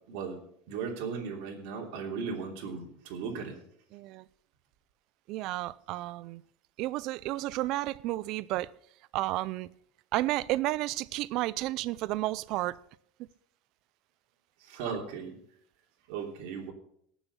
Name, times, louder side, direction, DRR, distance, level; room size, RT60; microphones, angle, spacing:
voice 1, 0.1-0.4 0.7-3.6 14.6-15.3 16.1-16.7, right 5 dB, 65° right, 3.1 m, -36 dB
voice 2, 3.9-4.2 5.3-6.4 6.8-8.7 9.1-9.7 10.1-12.8, right 17 dB, 50° right, 0.4 m, -32 dB
18.0 x 7.1 x 5.6 m
cardioid pair, 160°, 0 cm